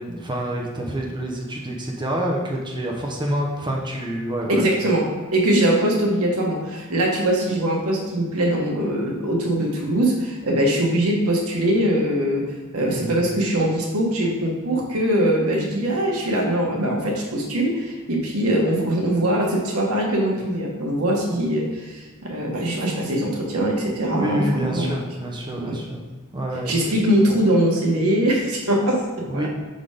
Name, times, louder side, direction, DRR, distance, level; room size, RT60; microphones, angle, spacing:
voice 1, 0.0-4.7 12.9-13.2 24.2-26.0 26.3-26.7 29.3-29.5, right 1 dB, 20° right, -1 dB, 0.8 m, -27 dB
voice 2, 4.5-12.4 12.7-24.9 25.5-25.8 26.7-29.5, right 1 dB, 90° right, -1 dB, 1.4 m, -22 dB
5.5 x 4.0 x 5.0 m, 1.3 s
head